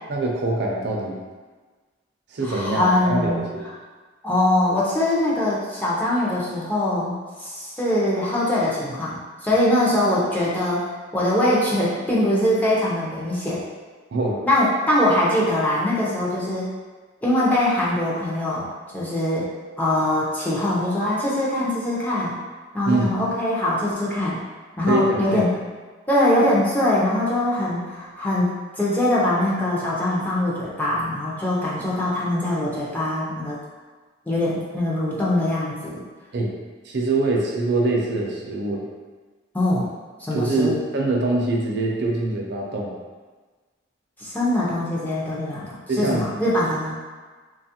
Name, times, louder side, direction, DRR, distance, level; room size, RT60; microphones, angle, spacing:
voice 1, 0.1-1.2 2.3-3.6 14.1-14.4 22.9-23.1 24.9-25.5 36.3-36.5 36.9-38.9 40.3-42.9 45.9-46.2, right 2 dB, 60° right, -1 dB, 0.5 m, -24 dB
voice 2, 2.4-3.5 4.2-13.6 14.4-16.7 17.2-18.7 18.9-19.5 19.8-22.4 22.7-24.4 24.8-25.5 26.1-28.5 28.8-33.6 34.3-36.0 39.5-39.9 40.2-40.8 44.2-47.0, left 1 dB, 10° left, -7 dB, 0.5 m, -22 dB
2.9 x 2.3 x 2.8 m, 1.4 s
head